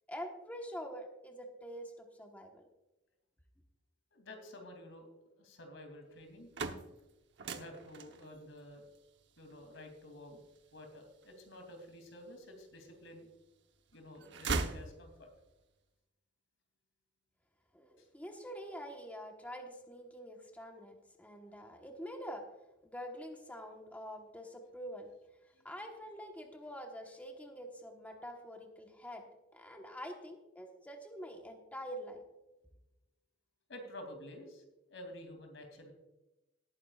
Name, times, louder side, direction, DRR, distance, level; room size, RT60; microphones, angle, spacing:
voice 1, 0.1-2.6 17.7-22.5 22.8-25.1 25.6-29.2 29.5-32.2, equal, 10° left, 2 dB, 1.2 m, -46 dB
voice 2, 4.1-5.1 5.4-6.5 7.5-8.8 9.4-10.4 10.7-13.2 13.9-15.3 18.0-18.1 33.7-35.9, left 1 dB, 80° left, 4 dB, 2.8 m, -51 dB
sound 1, 6.2-12.2 12.8-13.6 13.9-15.5, right 4 dB, 65° right, 1.0 m, -41 dB
18.5 x 9.4 x 2.4 m, 0.99 s
head